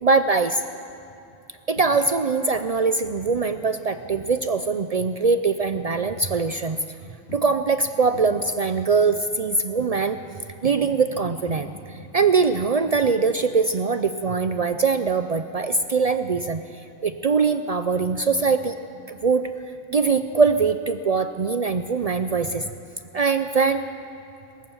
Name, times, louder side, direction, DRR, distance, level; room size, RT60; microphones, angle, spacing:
voice 1, 0.0-0.6 1.7-6.8 7.3-10.2 10.6-16.6 17.0-18.7 19.1-19.5 19.9-22.7 23.1-23.8, right 4 dB, 85° right, 10 dB, 0.3 m, -22 dB
sound 1, 1.6-2.9 3.3-4.5 4.9-5.3 5.7-6.9 7.1-7.7 8.1-8.5 8.9-9.2 9.5-11.2 11.5-12.6 12.9-14.4 14.7-15.0, equal, 50° left, 4.4 m, -42 dB
20.0 x 18.5 x 7.1 m, 2.7 s
omnidirectional pair, 1.4 m